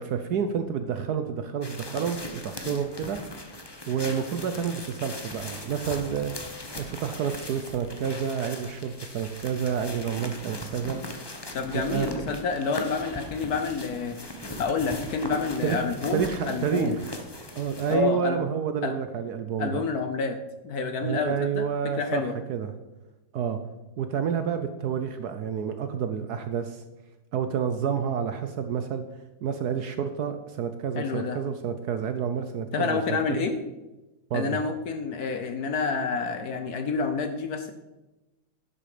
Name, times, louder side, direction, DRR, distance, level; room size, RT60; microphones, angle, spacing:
voice 1, 0.0-3.2 3.9-6.3 6.8-11.0 11.7-12.2 15.6-15.8 16.1-17.0 17.6-19.8 21.0-22.2 22.5-22.7 23.3-23.6 24.0-26.8 27.3-29.0 29.4-33.5 34.3-34.6, right 7 dB, 65° right, 9 dB, 1.0 m, -29 dB
sound 1, 1.6-18.0, left 1 dB, 20° left, 0.6 m, -39 dB
voice 2, 11.5-14.2 14.6-17.0 17.9-18.4 18.8-18.9 19.6-20.4 20.6-21.7 22.0-22.4 31.0-31.4 32.7-33.6 34.3-37.7, left 4 dB, 60° left, 8 dB, 1.1 m, -28 dB
11.5 x 7.7 x 4.9 m, 1.1 s
omnidirectional pair, 2.2 m